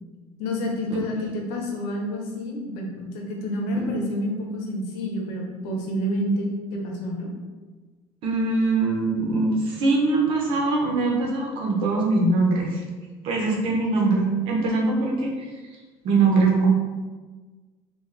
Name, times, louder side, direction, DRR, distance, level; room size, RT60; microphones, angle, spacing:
voice 1, 0.4-7.3, equal, 85° left, 0 dB, 0.9 m, -29 dB
voice 2, 8.2-12.8 13.2-15.3 16.0-16.7, right 3 dB, 55° right, -1 dB, 0.9 m, -22 dB
4.7 x 2.5 x 3.3 m, 1.3 s
cardioid pair, 165°, 11 cm